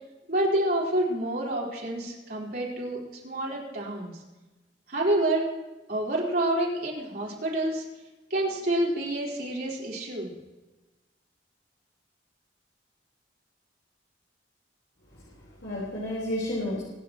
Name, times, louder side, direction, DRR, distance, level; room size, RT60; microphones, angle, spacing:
voice 1, 0.3-4.1 4.9-5.5 5.9-7.9 8.3-10.3, right 1 dB, 55° right, -4 dB, 4.3 m, -28 dB
voice 2, 15.1-16.8, left 1 dB, 70° left, -7 dB, 4.4 m, -32 dB
24.0 x 10.5 x 3.1 m, 1.1 s
head